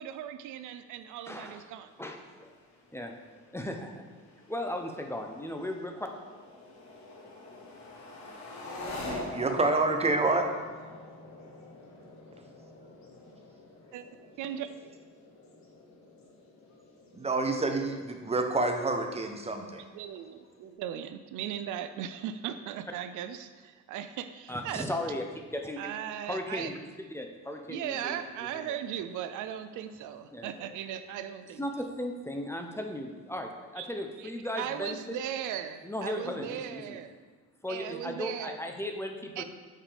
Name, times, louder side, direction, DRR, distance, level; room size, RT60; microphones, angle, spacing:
voice 1, 0.0-1.9 13.9-14.0 14.4-14.9 19.9-24.9 25.8-26.7 27.7-31.6 33.8-33.9 34.2-34.3 34.6-37.2 37.7-38.6 39.4-39.5, right 10 dB, 85° right, 11 dB, 0.5 m, -38 dB
voice 2, 1.3-1.6 2.0-2.5 2.9-3.1 3.5-4.0 4.5-6.1 24.5-25.8 26.2-26.8 27.1-28.2 28.6-28.7 30.3-30.7 31.6-35.2 35.8-37.0 37.6-39.4, left 1 dB, 10° left, 3 dB, 0.7 m, -36 dB
sound 1, 1.9-20.7, left 1 dB, 65° left, 1.5 m, -47 dB
voice 3, 9.0-10.5 17.1-19.8, right 3 dB, 20° right, 5 dB, 0.8 m, -28 dB
7.4 x 5.3 x 3.4 m, 1.4 s
cardioid pair, 90°, 30 cm